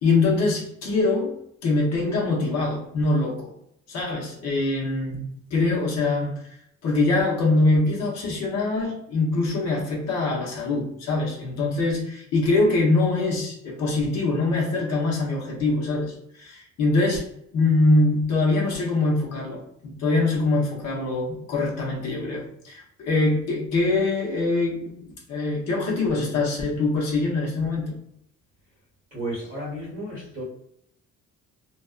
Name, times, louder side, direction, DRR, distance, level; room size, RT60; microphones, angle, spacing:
voice 1, 0.0-3.5 3.9-6.4 6.8-28.0, left 2 dB, 60° left, -3 dB, 0.8 m, -24 dB
voice 2, 29.1-30.4, right 1 dB, 25° right, -7 dB, 0.9 m, -33 dB
2.5 x 2.2 x 2.3 m, 0.73 s
cardioid pair, 175°, 30 cm